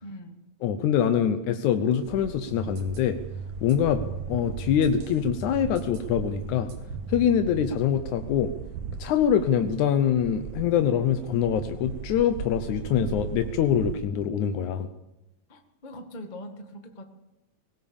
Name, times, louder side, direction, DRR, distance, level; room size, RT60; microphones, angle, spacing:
voice 1, 0.0-0.4 15.5-17.0, equal, 20° left, 5 dB, 1.7 m, -42 dB
voice 2, 0.6-3.2 3.6-6.7 7.1-8.5 9.0-14.9, left 8 dB, 85° left, 8 dB, 2.4 m, -24 dB
sound 1, 2.0-14.0, right 6 dB, 65° right, 1.2 m, -39 dB
sound 2, 2.5-7.7, right 2 dB, 85° right, 3.8 m, -39 dB
22.0 x 19.0 x 7.1 m, 0.95 s
omnidirectional pair, 3.3 m